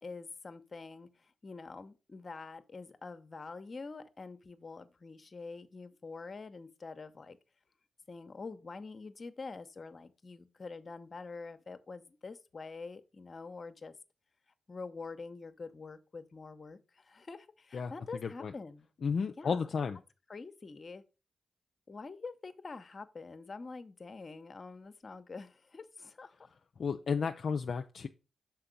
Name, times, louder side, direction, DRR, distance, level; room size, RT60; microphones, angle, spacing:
voice 1, 0.0-7.4 8.1-13.9 14.7-18.9 19.4-19.6 20.3-21.0 21.9-26.4, left 4 dB, 45° left, 0.8 m, -46 dB
voice 2, 18.2-18.5 19.0-20.0 26.8-28.1, left 5 dB, 65° left, 0.4 m, -33 dB
5.7 x 4.5 x 5.1 m
supercardioid pair, 45°, 0 cm